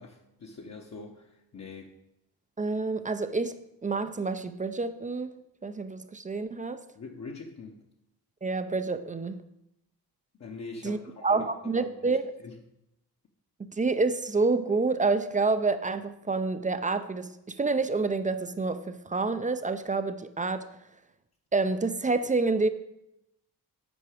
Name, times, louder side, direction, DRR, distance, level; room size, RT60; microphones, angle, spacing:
voice 1, 0.0-1.9 6.9-7.8 10.4-12.6, left 4 dB, 40° left, 0 dB, 0.8 m, -44 dB
voice 2, 2.6-3.5 3.8-5.3 5.6-6.8 8.4-9.4 10.8-12.2 13.6-20.7 21.5-22.7, right 3 dB, 20° right, 11 dB, 0.4 m, -28 dB
8.7 x 4.7 x 4.8 m, 0.85 s
cardioid pair, 95°, 40 cm